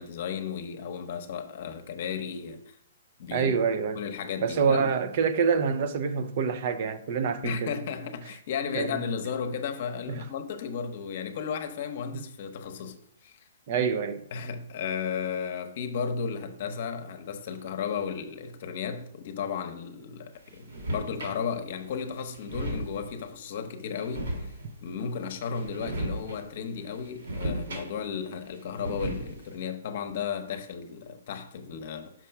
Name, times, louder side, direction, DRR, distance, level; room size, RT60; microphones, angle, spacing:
voice 1, 0.0-2.8 3.2-3.5 4.0-4.9 7.4-13.4 14.3-24.5 24.8-32.1, left 6 dB, 45° left, 0.9 m, -34 dB
voice 2, 3.3-4.0 4.4-7.7 8.7-8.9 10.1-10.2 13.7-14.2, right 6 dB, 40° right, 0.5 m, -26 dB
sound 1, 20.5-21.4 21.9-22.0 22.2-23.2 23.9-24.9 25.4-26.4 26.7-28.2 28.5-29.5, right 1 dB, 75° right, 3.1 m, -35 dB
6.0 x 4.5 x 5.8 m
hypercardioid pair, 165°, 0 cm